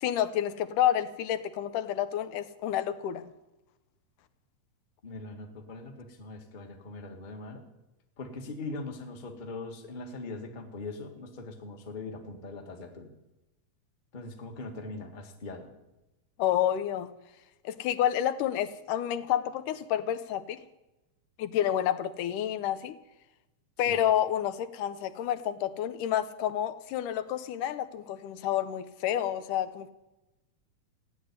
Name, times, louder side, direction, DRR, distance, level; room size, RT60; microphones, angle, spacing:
voice 1, 0.0-3.3 16.4-17.1 17.6-20.6 21.4-23.0 23.8-29.9, left 11 dB, 90° left, 10 dB, 2.4 m, -29 dB
voice 2, 5.0-7.6 8.2-13.1 14.1-15.7 23.8-24.0, left 3 dB, 25° left, 3 dB, 1.0 m, -41 dB
15.5 x 8.2 x 9.5 m, 0.99 s
omnidirectional pair, 3.6 m